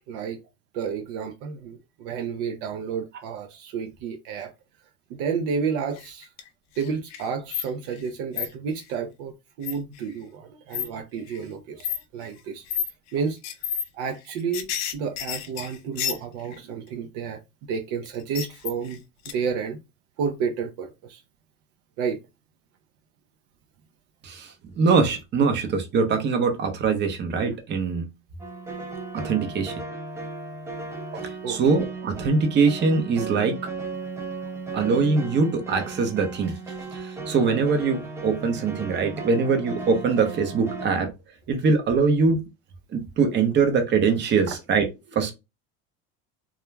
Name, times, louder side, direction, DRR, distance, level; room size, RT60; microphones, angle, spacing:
voice 1, 0.1-0.4 0.7-4.5 5.1-6.3 6.8-11.9 12.1-12.6 13.1-13.4 13.9-17.4 17.7-19.0 19.3-19.8 20.2-21.2 22.0-22.2 31.4-31.6 44.5-44.6, right 6 dB, 70° right, 0.6 m, -31 dB
sound 1, 6.0-6.5 6.8-8.1 8.4-8.5 9.6-10.0 10.7-10.9 11.3-11.4 11.8-12.0 12.7-12.9 13.4-13.8 14.1-16.6 18.1-19.0 19.3-19.4, left 9 dB, 55° left, 0.6 m, -30 dB
voice 2, 24.2-28.1 29.1-29.7 31.1-33.6 34.7-36.6 36.9-41.1 41.5-42.4 42.9-45.3, right 4 dB, 35° right, 0.7 m, -23 dB
sound 2, 28.4-40.9, right 3 dB, 10° right, 0.3 m, -36 dB
2.3 x 2.2 x 3.1 m
cardioid pair, 135°, 33 cm